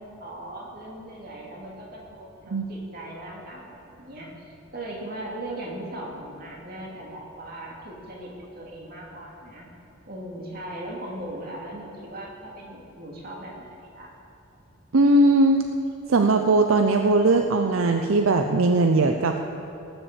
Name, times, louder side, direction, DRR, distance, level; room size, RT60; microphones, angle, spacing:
voice 1, 0.0-9.7 10.1-13.7 13.9-14.1, right 1 dB, 45° right, -2 dB, 2.4 m, -38 dB
voice 2, 14.9-15.7 16.1-19.5, right 2 dB, 75° right, 5 dB, 0.6 m, -19 dB
18.0 x 7.0 x 7.3 m, 2.9 s
head